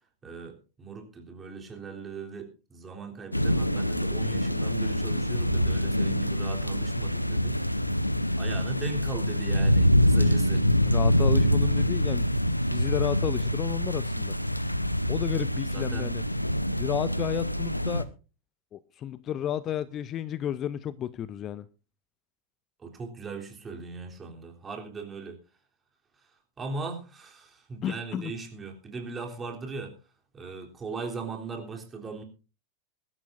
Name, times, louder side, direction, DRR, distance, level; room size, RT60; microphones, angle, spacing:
voice 1, 0.2-7.6 8.4-10.7 15.7-16.1 22.8-25.4 26.2-30.0 30.3-32.2, right 4 dB, 20° right, 3.4 m, -39 dB
sound 1, 3.3-18.0, equal, 90° left, 0.8 m, -25 dB
voice 2, 10.9-12.3 12.7-14.3 15.1-16.2 16.8-18.1 18.7-21.7 27.8-28.3, left 10 dB, 30° left, 0.6 m, -32 dB
22.0 x 13.0 x 2.6 m
figure-of-eight pair, 90°, 0 cm